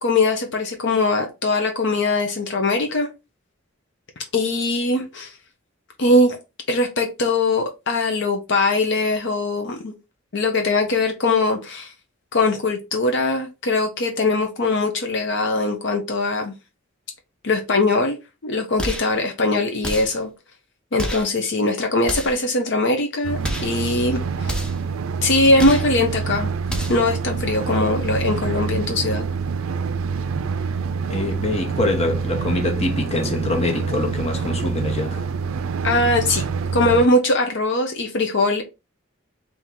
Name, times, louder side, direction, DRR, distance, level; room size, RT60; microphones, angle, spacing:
voice 1, 0.0-3.1 4.3-5.3 6.0-6.4 6.7-9.9 10.3-11.9 12.3-16.5 17.4-18.2 18.4-20.3 20.9-24.6 25.2-26.5 26.9-29.2 35.8-36.4 36.7-38.6, left 2 dB, 60° left, 0.7 m, -21 dB
sound 1, 18.8-19.2 19.8-20.2 21.0-21.3 22.0-22.5 23.4-23.8 24.4-24.9 25.6-25.9 26.6-27.1, equal, 5° left, 0.7 m, -29 dB
sound 2, 23.2-37.1, right 5 dB, 85° right, 0.4 m, -26 dB
voice 2, 31.1-35.2, left 2 dB, 30° left, 0.9 m, -24 dB
3.6 x 2.8 x 4.3 m
head